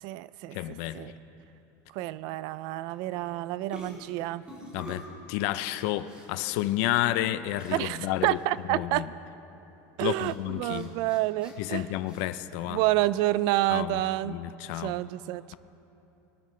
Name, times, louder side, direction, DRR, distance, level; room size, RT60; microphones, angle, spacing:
voice 1, 0.0-1.1 1.9-4.4 7.7-9.1 10.0-11.9 12.7-14.4 14.7-15.6, right 16 dB, 60° right, 0.4 m, -29 dB
voice 2, 0.5-1.1 4.7-8.4 8.7-9.1 10.0-10.9 11.6-12.8 13.7-14.0 14.3-15.0, left 14 dB, 70° left, 0.5 m, -31 dB
sound 1, 3.1-3.3 3.7-5.1 5.7-6.3 6.6-6.7 7.6-8.1 8.3-8.5 10.2-10.3 10.7-12.2, equal, 10° right, 2.9 m, -46 dB
22.0 x 12.5 x 3.2 m
cardioid pair, 150°, 9 cm